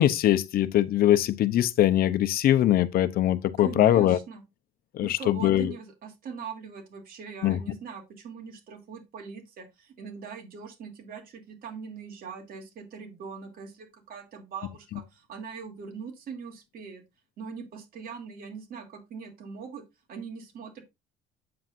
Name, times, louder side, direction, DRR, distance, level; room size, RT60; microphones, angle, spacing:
voice 1, 0.0-4.2 4.9-5.7 7.4-7.6, left 12 dB, 65° left, 0.7 m, -22 dB
voice 2, 3.6-4.4 5.0-17.0 17.4-19.8 20.1-20.8, right 6 dB, 60° right, 2.9 m, -41 dB
8.6 x 7.6 x 2.6 m
cardioid pair, 110°, 17 cm